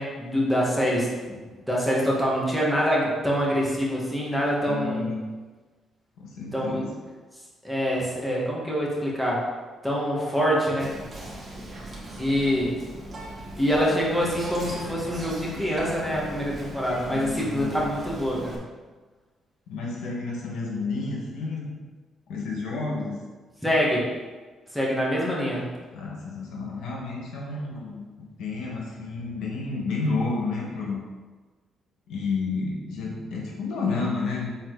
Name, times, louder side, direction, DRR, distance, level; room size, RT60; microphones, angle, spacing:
voice 1, 0.0-5.1 6.5-6.8 7.6-9.4 9.8-10.9 12.2-12.7 13.6-18.6 23.6-24.1 24.7-25.6, equal, 5° right, -5 dB, 2.0 m, -25 dB
voice 2, 4.7-5.3 6.2-6.9 17.1-17.9 19.7-21.7 22.3-23.2 25.9-31.0 32.1-34.5, left 3 dB, 85° left, -3 dB, 1.7 m, -30 dB
Whispering, 10.8-18.6, right 1 dB, 35° right, 1.8 m, -39 dB
7.4 x 4.4 x 4.1 m, 1.3 s
cardioid pair, 90°, 0 cm